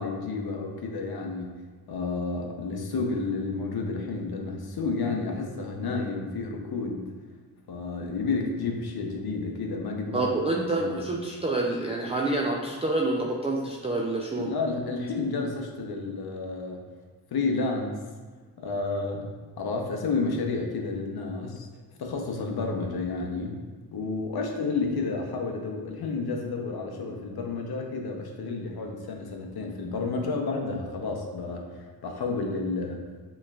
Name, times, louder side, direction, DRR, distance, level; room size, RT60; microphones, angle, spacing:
voice 1, 0.0-1.6 1.9-7.2 7.7-10.3 10.7-11.0 14.4-16.8 17.3-18.0 18.6-19.3 19.6-21.7 22.0-23.6 23.9-33.0, left 3 dB, 70° left, 2 dB, 0.8 m, -31 dB
voice 2, 10.1-14.5, right 2 dB, 15° right, -1 dB, 0.4 m, -27 dB
7.0 x 3.1 x 2.3 m, 1.4 s
cardioid pair, 90°, 39 cm